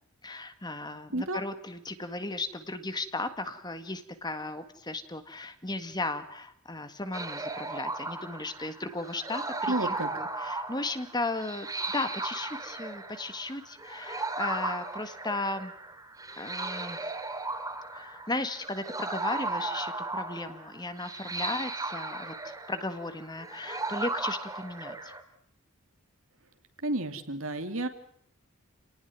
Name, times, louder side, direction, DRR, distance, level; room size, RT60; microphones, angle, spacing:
voice 1, 0.2-11.7 11.9-15.7 16.4-17.1 17.9-25.1, left 2 dB, 20° left, 10 dB, 1.8 m, -36 dB
voice 2, 1.1-1.4 9.7-10.1 26.8-27.9, right 2 dB, 60° right, 8 dB, 2.8 m, -31 dB
sound 1, 7.1-25.2, right 3 dB, 15° right, 3.1 m, -36 dB
29.0 x 19.0 x 9.4 m, 0.67 s
head